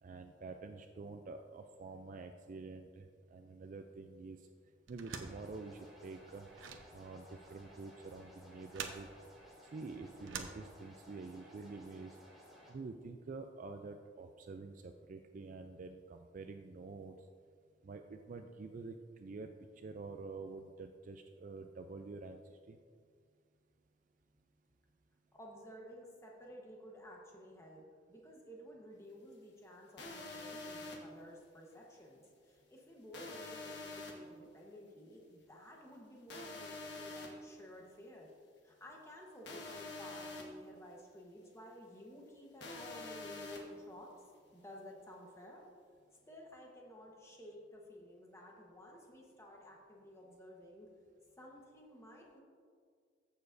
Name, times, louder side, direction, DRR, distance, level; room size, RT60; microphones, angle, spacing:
voice 1, 0.0-4.5 4.9-6.5 6.9-9.1 9.6-12.2 12.7-17.2 17.8-19.5 19.8-22.8, right 3 dB, 45° right, 6 dB, 0.3 m, -48 dB
sound 1, 4.9-11.2, right 5 dB, 90° right, 0.8 m, -49 dB
sound 2, 5.2-12.7, equal, ahead, 2.2 m, -59 dB
voice 2, 25.3-38.3 38.6-44.1 44.5-45.6 46.3-50.9 51.4-52.4, equal, 15° left, -1 dB, 1.1 m, -54 dB
sound 3, 30.0-31.0 33.1-34.1 36.3-37.3 39.5-40.4 42.6-43.6, left 3 dB, 60° left, 1.3 m, -46 dB
14.5 x 6.9 x 2.6 m, 2.1 s
head